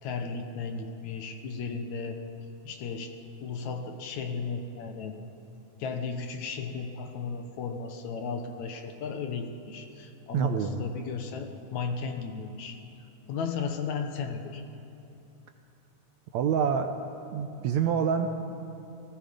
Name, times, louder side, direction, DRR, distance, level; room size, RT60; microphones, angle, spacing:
voice 1, 0.0-2.2 2.6-3.1 3.4-5.2 5.8-12.8 13.3-14.6, left 5 dB, 65° left, 5 dB, 2.3 m, -35 dB
voice 2, 10.3-10.8 16.3-16.9 17.3-18.3, right 7 dB, 70° right, 7 dB, 1.9 m, -26 dB
29.0 x 18.0 x 5.2 m, 2.7 s
omnidirectional pair, 3.8 m